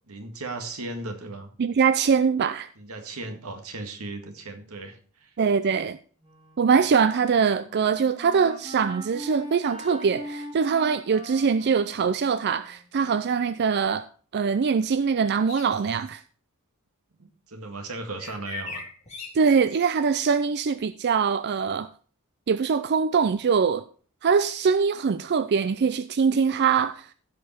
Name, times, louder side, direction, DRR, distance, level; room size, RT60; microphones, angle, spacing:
voice 1, 0.1-1.5 2.8-5.3 17.2-18.8, right 2 dB, 90° right, 1.8 m, -36 dB
voice 2, 1.6-2.7 5.4-6.0 6.6-14.1 14.3-16.2 19.3-21.9 22.5-23.8 24.2-27.1, right 6 dB, 50° right, 0.4 m, -23 dB
Wind instrument woodwind instrument, 6.2-13.4, equal, 25° right, 2.7 m, -42 dB
sound 1, 15.5-16.1 18.2-20.0, left 5 dB, 30° left, 2.7 m, -40 dB
15.5 x 5.2 x 4.3 m
head